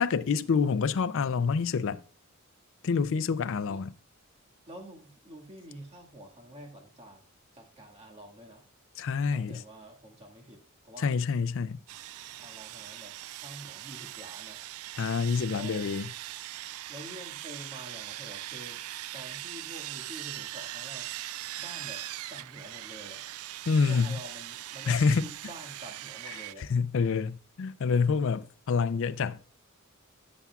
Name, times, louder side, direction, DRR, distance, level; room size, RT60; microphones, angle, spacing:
voice 1, 0.0-2.0 2.8-3.9 9.0-9.6 11.0-11.8 15.0-16.1 23.7-24.2 24.9-25.3 26.6-29.4, left 5 dB, 60° left, 0.4 m, -27 dB
voice 2, 4.7-7.2 7.5-8.6 9.3-11.2 12.4-14.6 15.5-15.9 16.9-18.8 19.1-21.1 21.6-22.0 22.3-23.2 23.9-26.7, right 1 dB, 30° right, 1.8 m, -47 dB
Sawing, 11.9-26.5, right 14 dB, 80° right, 0.3 m, -41 dB
16.5 x 7.0 x 2.3 m
head